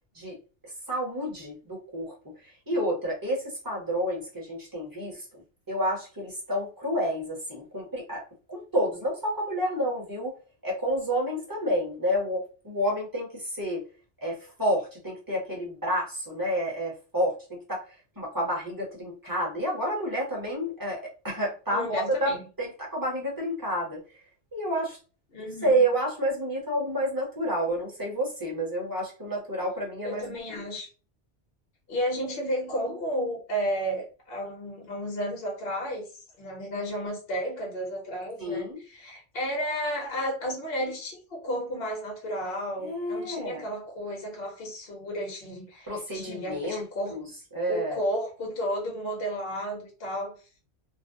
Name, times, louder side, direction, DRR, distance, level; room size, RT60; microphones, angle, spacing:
voice 1, 0.6-5.4 5.7-10.4 10.6-13.8 14.2-22.3 22.6-24.2 24.5-25.0 25.4-30.6 38.4-38.8 42.8-43.6 45.9-47.3 47.5-48.0, equal, 20° right, -3 dB, 0.8 m, -30 dB
voice 2, 21.7-22.4 25.3-25.7 30.0-30.9 31.9-36.1 36.4-38.7 38.9-47.2 47.7-50.3, equal, 55° left, 0 dB, 1.0 m, -32 dB
2.5 x 2.1 x 2.6 m, 0.34 s
omnidirectional pair, 1.2 m